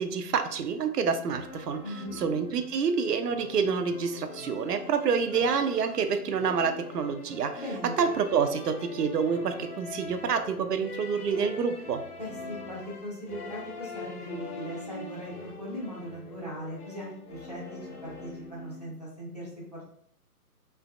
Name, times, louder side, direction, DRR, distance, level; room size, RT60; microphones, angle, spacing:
voice 1, 0.0-12.0, right 6 dB, 85° right, 8 dB, 0.6 m, -28 dB
sound 1, 1.3-19.0, left 2 dB, 75° left, 1.1 m, -43 dB
voice 2, 1.8-2.2 7.5-8.0 12.2-19.5, equal, 25° left, -6 dB, 0.6 m, -39 dB
3.3 x 3.0 x 2.5 m, 0.65 s
hypercardioid pair, 170°, 46 cm